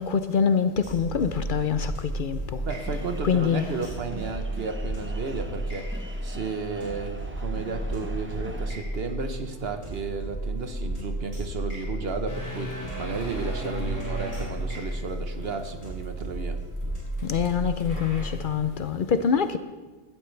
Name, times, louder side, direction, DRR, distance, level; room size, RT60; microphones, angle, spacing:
voice 1, 0.0-2.6 3.2-3.7 17.2-19.6, left 7 dB, 55° left, 0.7 m, -25 dB
sound 1, 0.8-18.6, right 1 dB, 45° right, 4.7 m, -33 dB
voice 2, 2.6-5.8 6.2-16.6, right 4 dB, 65° right, 1.3 m, -33 dB
sound 2, 2.7-8.7, right 1 dB, 10° right, 0.8 m, -44 dB
sound 3, 12.3-19.0, equal, 15° left, 2.2 m, -40 dB
16.0 x 12.5 x 3.3 m
omnidirectional pair, 1.1 m